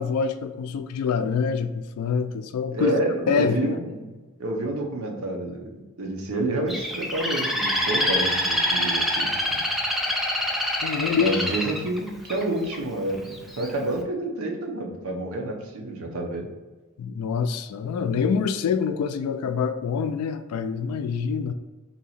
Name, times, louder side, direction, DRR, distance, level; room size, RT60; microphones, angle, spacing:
voice 1, 0.0-2.9 3.3-3.8 10.8-11.3 17.0-21.5, left 6 dB, 85° left, 14 dB, 0.3 m, -26 dB
voice 2, 2.7-4.1 4.4-9.3 11.1-16.5 18.0-18.1, right 1 dB, 70° right, 1 dB, 0.7 m, -29 dB
Bird, 6.7-12.8 13.3-13.7, equal, ahead, 0.4 m, -25 dB
2.8 x 2.8 x 4.1 m, 1.2 s
head